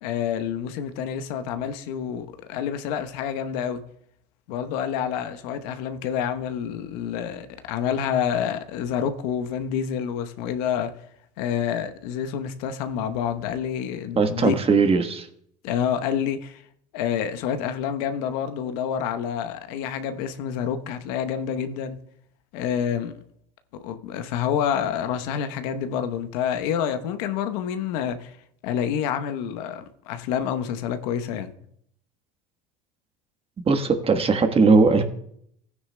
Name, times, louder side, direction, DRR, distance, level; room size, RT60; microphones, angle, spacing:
voice 1, 0.0-3.8 4.5-10.9 11.4-14.6 15.6-16.6 16.9-22.0 22.5-23.1 23.8-28.4 28.6-31.5, left 8 dB, 70° left, 1.0 m, -28 dB
voice 2, 14.2-15.3 33.7-35.0, right 4 dB, 25° right, 1.3 m, -19 dB
15.5 x 9.6 x 2.2 m
hypercardioid pair, 90°, 21 cm